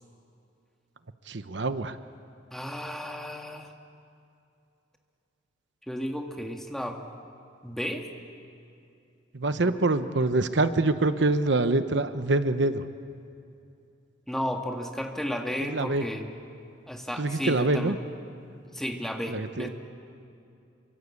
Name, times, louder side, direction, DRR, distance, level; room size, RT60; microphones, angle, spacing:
voice 1, 1.3-2.0 9.3-12.8 15.7-16.0 17.2-18.0 19.3-19.7, right 2 dB, 70° right, 10 dB, 1.0 m, -25 dB
voice 2, 2.5-3.7 5.9-7.0 7.6-8.1 9.6-9.8 14.3-16.4 16.9-18.0 18.7-19.7, equal, ahead, 2 dB, 1.9 m, -33 dB
27.5 x 24.5 x 8.5 m, 2.6 s
head